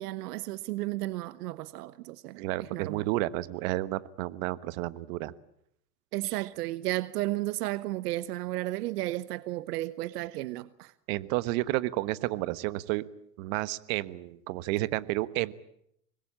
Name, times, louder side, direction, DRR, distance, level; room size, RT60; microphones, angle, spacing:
voice 1, 0.0-3.1 6.1-10.9, right 17 dB, 75° right, 1.1 m, -33 dB
voice 2, 2.4-5.3 6.2-6.5 11.1-13.1 13.4-15.5, right 18 dB, 55° right, 1.3 m, -31 dB
25.5 x 21.0 x 8.7 m
supercardioid pair, 130°, 48 cm